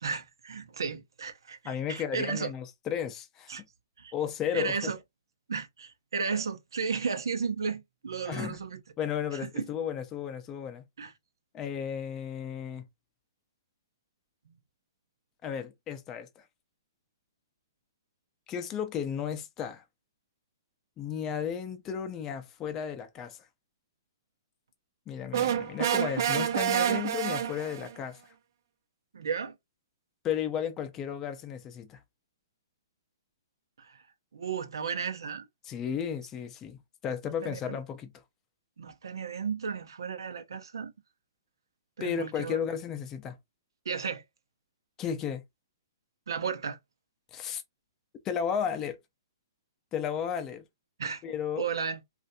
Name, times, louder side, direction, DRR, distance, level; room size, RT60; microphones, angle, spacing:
voice 1, 0.0-2.5 3.5-3.6 4.0-4.1 4.5-5.0 5.5-8.8 9.3-9.7 11.0-11.1 14.5-14.6 29.1-29.6 33.8-34.0 34.3-35.4 37.4-37.8 38.8-40.9 42.0-42.6 43.8-44.2 46.3-46.8 51.0-51.2 51.6-52.0, right 5 dB, 90° right, 0.7 m, -34 dB
voice 2, 1.6-3.5 4.1-4.9 8.3-8.6 9.0-10.8 11.5-12.8 15.4-16.4 18.5-19.8 21.0-23.4 25.1-28.2 30.2-32.0 35.6-36.8 37.0-38.1 42.0-43.4 45.0-45.4 47.3-47.6 48.2-49.0 49.9-50.6 51.2-51.7, left 8 dB, 20° left, 0.5 m, -34 dB
sound 1, 25.3-27.9, right 9 dB, 55° right, 0.5 m, -28 dB
3.3 x 2.5 x 2.7 m
hypercardioid pair, 155°, 2 cm